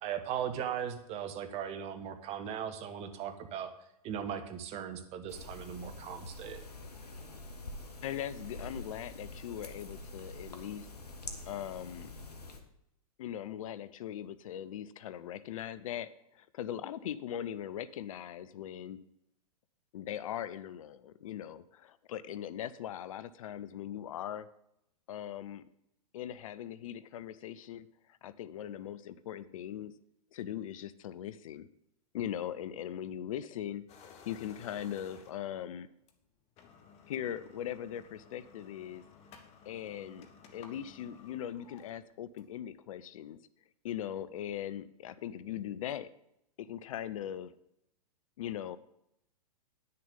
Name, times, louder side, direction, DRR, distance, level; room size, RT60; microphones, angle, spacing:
voice 1, 0.0-3.7 4.0-6.6, right 8 dB, 35° right, 9 dB, 1.2 m, -38 dB
sound 1, 5.3-12.6, left 2 dB, 85° left, 1.4 m, -46 dB
voice 2, 8.0-10.9 11.5-12.1 13.2-19.0 19.9-24.5 25.1-25.7 26.1-27.9 28.2-29.9 30.3-31.7 32.1-33.8 34.3-35.9 37.1-39.0 39.7-43.4 43.8-46.1 46.6-47.5 48.4-48.8, left 10 dB, 60° left, 16 dB, 0.6 m, -40 dB
sound 2, 33.9-35.6 36.1-36.2 36.5-42.7, left 6 dB, 35° left, 1.3 m, -56 dB
10.5 x 6.7 x 5.3 m, 0.79 s
hypercardioid pair, 110°, 19 cm